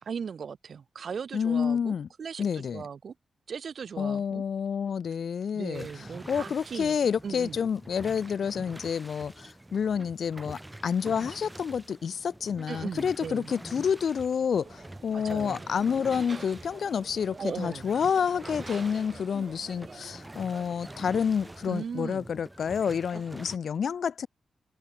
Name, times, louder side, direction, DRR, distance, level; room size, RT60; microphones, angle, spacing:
voice 1, 0.0-3.1 3.5-4.4 5.5-7.0 7.2-7.6 12.7-13.6 15.1-15.6 17.4-17.9 21.7-22.3, right 6 dB, 65° right, 2.6 m, -38 dB
voice 2, 1.3-2.1 2.4-2.8 4.0-5.9 6.3-24.3, left 7 dB, 70° left, 0.5 m, -29 dB
sound 1, 5.7-23.6, right 1 dB, 10° right, 2.3 m, -46 dB
sound 2, 14.5-21.8, right 4 dB, 40° right, 3.2 m, -48 dB
cardioid pair, 80°, 0 cm